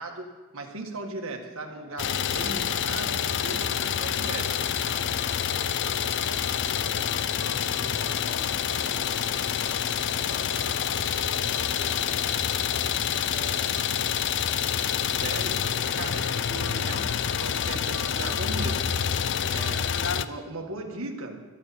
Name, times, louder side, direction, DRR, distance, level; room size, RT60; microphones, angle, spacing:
voice 1, 0.0-4.5 15.2-15.7 16.0-18.9 19.5-21.4, right 2 dB, 65° right, 2 dB, 1.8 m, -37 dB
sound 1, 1.6-18.4, left 2 dB, 25° right, 3.4 m, -51 dB
Idling, 2.0-20.3, left 8 dB, 55° left, 0.5 m, -27 dB
voice 2, 7.6-14.0, equal, 25° left, -5 dB, 4.2 m, -49 dB
25.0 x 9.1 x 4.3 m, 1.3 s
head